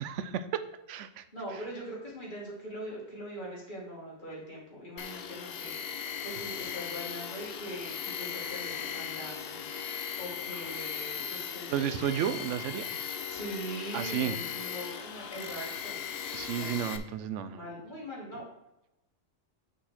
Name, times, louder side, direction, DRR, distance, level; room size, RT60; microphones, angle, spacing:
voice 1, 0.0-1.2 11.7-12.8 13.9-14.4 16.3-17.7, right 9 dB, 70° right, 11 dB, 0.8 m, -32 dB
voice 2, 1.3-12.0 13.3-16.0 16.5-16.8 17.5-18.4, equal, 35° left, -5 dB, 2.5 m, -42 dB
Tools, 5.0-17.0, left 8 dB, 60° left, 0.7 m, -38 dB
5.9 x 4.2 x 6.3 m, 0.91 s
omnidirectional pair, 1.4 m